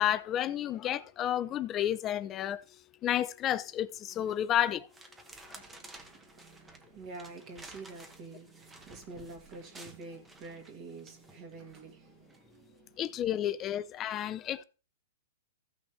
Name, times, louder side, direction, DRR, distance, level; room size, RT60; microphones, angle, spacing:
voice 1, 0.0-2.6 3.0-4.9 13.0-14.6, left 11 dB, 20° left, 0.5 m, -31 dB
sound 1, 4.1-4.4 4.9-11.8 12.3-12.6, right 2 dB, 10° right, 1.0 m, -53 dB
voice 2, 5.4-13.3, right 3 dB, 35° right, 2.2 m, -48 dB
15.0 x 6.0 x 3.2 m
hypercardioid pair, 160°, 0 cm